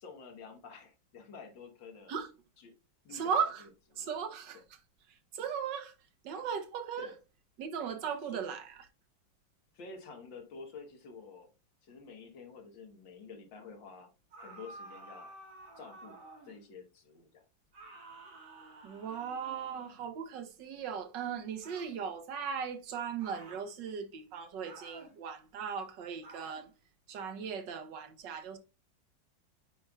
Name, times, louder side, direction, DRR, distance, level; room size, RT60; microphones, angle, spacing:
voice 1, 0.0-2.1 2.6-2.7 3.0-3.3 3.9-4.1 7.0-7.2 8.3-8.4 9.7-11.5 11.8-14.1 14.4-15.3 15.8-17.4, left 4 dB, 75° left, 2.0 m, -49 dB
voice 2, 3.1-3.7 4.0-4.8 5.1-5.9 6.2-7.1 7.6-8.8 18.8-26.7 27.1-28.6, right 7 dB, 70° right, 1.5 m, -37 dB
sound 1, 14.3-16.6 17.7-20.0 21.6-22.0 23.2-23.7 24.6-25.2 26.2-26.7, right 2 dB, 85° right, 2.8 m, -51 dB
8.6 x 5.2 x 2.3 m
omnidirectional pair, 2.1 m